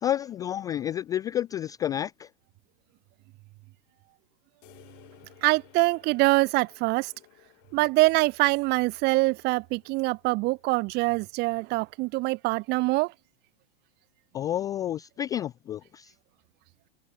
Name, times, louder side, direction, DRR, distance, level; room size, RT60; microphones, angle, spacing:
voice 1, 0.0-2.3 14.3-16.1, left 11 dB, 10° left, 0.3 m, -30 dB
sound 1, 4.6-12.1, left 40 dB or more, 45° left, 5.8 m, -59 dB
voice 2, 5.4-7.1 7.7-13.1, right 23 dB, 35° right, 0.9 m, -24 dB
figure-of-eight pair, 95°, 30 cm